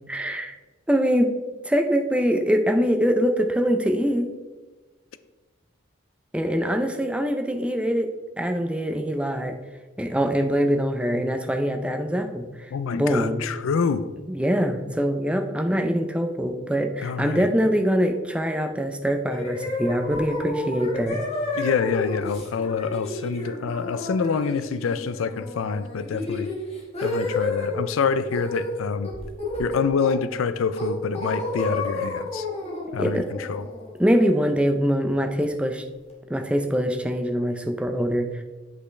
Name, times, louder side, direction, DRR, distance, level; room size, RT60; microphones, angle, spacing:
voice 1, 0.1-0.6 0.9-1.3 1.6-4.3 6.3-8.1 8.4-9.6 10.0-13.4 14.2-21.2 33.0-33.3 34.0-35.8 36.3-38.4, equal, 5° right, 5 dB, 0.5 m, -23 dB
voice 2, 12.7-14.1 17.0-17.5 21.6-26.5 27.0-29.1 29.6-32.5 32.9-33.6, left 5 dB, 90° left, 13 dB, 0.4 m, -26 dB
sound 1, 19.3-27.8 28.3-28.7 29.0-30.3 30.8-34.5, left 2 dB, 30° left, 1.5 m, -31 dB
8.3 x 5.4 x 3.3 m, 1.2 s
head